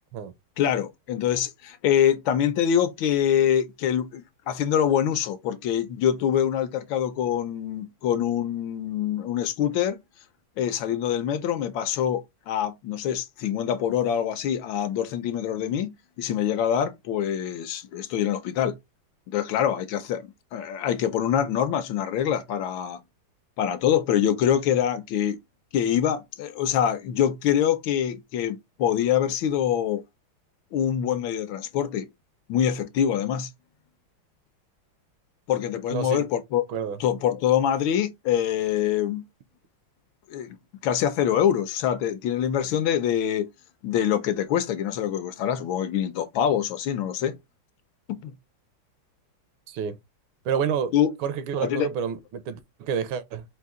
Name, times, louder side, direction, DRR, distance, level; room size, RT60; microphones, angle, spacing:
voice 1, 0.6-10.0 10.6-18.8 19.3-23.0 23.6-25.4 25.7-30.0 30.7-32.1 32.5-33.5 35.5-36.6 37.0-39.2 40.3-40.6 40.8-43.5 43.8-47.4 48.1-48.3 50.9-51.1 51.6-51.9, left 9 dB, 75° left, 1.3 m, -25 dB
voice 2, 35.9-36.2 36.7-37.0 49.7-50.0 50.5-50.9 51.2-53.4, right 7 dB, 80° right, 1.4 m, -29 dB
4.0 x 2.7 x 3.6 m
omnidirectional pair, 2.3 m